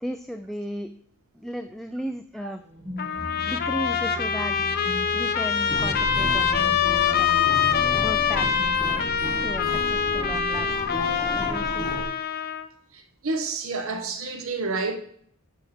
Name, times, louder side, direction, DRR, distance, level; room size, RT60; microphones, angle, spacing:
voice 1, 0.0-0.9 1.4-2.6 3.5-4.6 5.1-7.5 7.9-9.1 9.4-11.9, equal, ahead, 0.3 m, -35 dB
sound 1, 2.6-11.4, left 1 dB, 25° right, 1.7 m, -39 dB
Trumpet, 3.0-12.7, left 7 dB, 45° left, 0.6 m, -24 dB
sound 2, 5.7-12.1, equal, 20° left, 1.0 m, -33 dB
voice 2, 12.9-15.0, right 3 dB, 65° right, 1.0 m, -29 dB
10.5 x 3.6 x 5.9 m
head